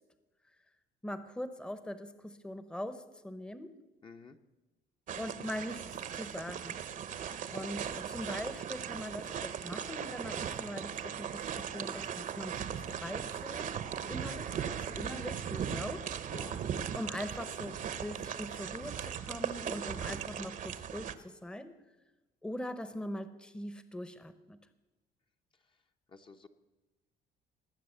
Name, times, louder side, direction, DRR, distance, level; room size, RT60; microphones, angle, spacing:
voice 1, 1.0-3.8 5.1-6.8 7.5-13.8 14.1-16.1 16.9-21.8 22.4-24.6, left 1 dB, 5° left, 12 dB, 0.9 m, -42 dB
voice 2, 4.0-4.4 16.3-16.6 26.1-26.5, left 4 dB, 30° left, 5 dB, 0.9 m, -50 dB
sound 1, 5.1-21.1, right 8 dB, 50° right, 0.9 m, -38 dB
19.5 x 7.6 x 7.9 m, 1.1 s
cardioid pair, 110°, 17 cm